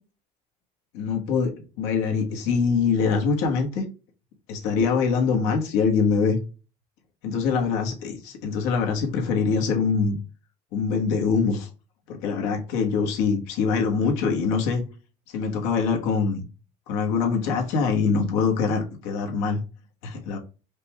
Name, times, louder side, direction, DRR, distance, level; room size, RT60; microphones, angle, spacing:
voice 1, 0.9-3.8 4.5-6.4 7.2-10.2 10.7-11.7 12.1-14.8 15.3-16.4 16.9-19.6 20.0-20.4, left 5 dB, 85° left, 1.2 m, -24 dB
5.1 x 2.2 x 2.9 m
cardioid pair, 125°, 17 cm